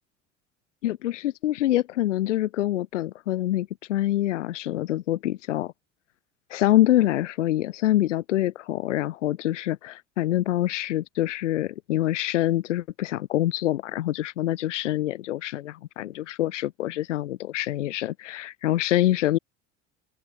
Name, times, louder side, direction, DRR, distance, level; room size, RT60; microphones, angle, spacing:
voice 1, 0.8-5.7 6.5-19.4, left 14 dB, 75° left, 0.8 m, -25 dB
open air
figure-of-eight pair, 65°, 37 cm